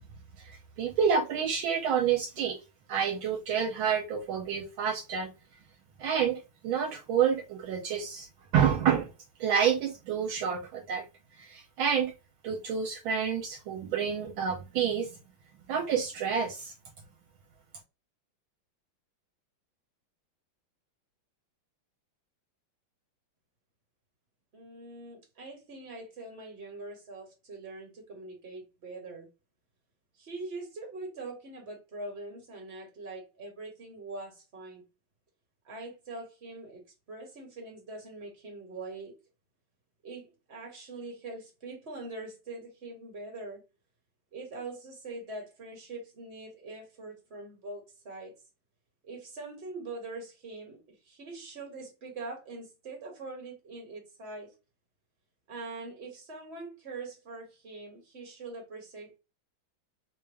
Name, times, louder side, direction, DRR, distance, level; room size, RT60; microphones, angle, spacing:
voice 1, 0.8-2.6 2.9-5.3 6.0-8.3 8.5-9.1 9.4-11.0 11.4-12.1 12.4-15.1 15.7-16.7, right 7 dB, 75° right, 1.5 m, -28 dB
voice 2, 24.5-29.3 30.1-34.8 35.6-36.8 37.1-39.2 40.0-43.6 44.3-48.3 49.0-54.5 55.5-59.2, right 2 dB, 35° right, 1.6 m, -43 dB
3.5 x 2.5 x 3.4 m
omnidirectional pair, 2.3 m